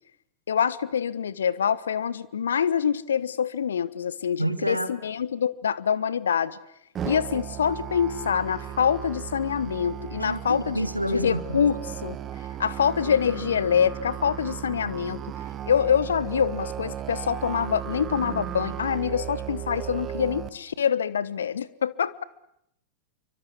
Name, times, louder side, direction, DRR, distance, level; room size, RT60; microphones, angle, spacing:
voice 1, 0.5-6.6 7.0-12.2 12.6-15.2 15.7-22.2, left 8 dB, 65° left, 19 dB, 1.2 m, -25 dB
voice 2, 4.4-4.9 10.2-11.6, right 1 dB, 90° right, 13 dB, 1.8 m, -28 dB
Musical instrument, 6.9-20.5, right 10 dB, 25° right, 1.7 m, -35 dB
28.0 x 24.5 x 8.5 m, 0.75 s
figure-of-eight pair, 90°, 0 cm